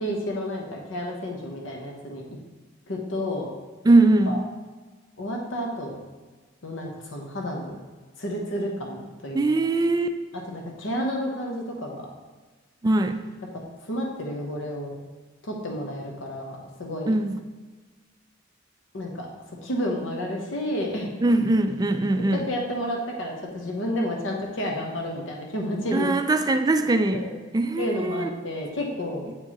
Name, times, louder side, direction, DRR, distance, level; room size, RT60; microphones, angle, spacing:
voice 1, 0.0-2.2 2.9-3.5 4.3-4.4 5.2-6.0 6.6-7.8 8.2-9.4 10.5-12.0 13.8-14.9 15.4-17.1 18.9-19.3 19.6-21.1 22.2-26.2 27.1-27.3 27.8-29.3, equal, 75° left, 0 dB, 1.0 m, -30 dB
voice 2, 3.8-4.4 9.3-10.1 12.8-13.2 17.1-17.4 21.2-22.5 25.9-27.3 27.5-28.3, right 2 dB, 20° right, 8 dB, 0.3 m, -21 dB
8.5 x 4.6 x 2.9 m, 1.3 s
head